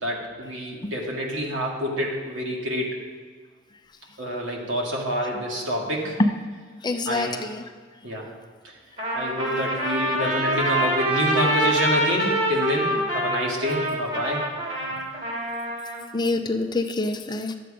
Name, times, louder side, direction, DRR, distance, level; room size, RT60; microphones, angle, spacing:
voice 1, 0.0-3.0 4.2-6.2 7.1-7.4 8.0-8.3 9.1-14.4, equal, 80° right, -1 dB, 2.2 m, -27 dB
voice 2, 6.8-7.7 16.1-17.6, left 2 dB, 20° left, 6 dB, 0.6 m, -25 dB
Trumpet, 9.0-16.0, right 1 dB, 40° right, 2.8 m, -25 dB
12.5 x 7.8 x 5.1 m, 1.6 s
head